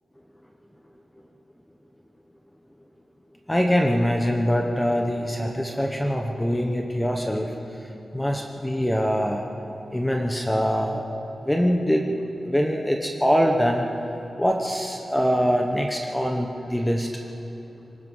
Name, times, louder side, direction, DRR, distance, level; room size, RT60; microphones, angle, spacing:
voice 1, 3.5-7.5 8.1-9.4 9.9-11.1 11.4-12.1 12.5-13.9 14.4-17.1, equal, 10° left, 2 dB, 1.1 m, -23 dB
24.5 x 19.5 x 5.6 m, 2.9 s
wide cardioid pair, 135°, 0 cm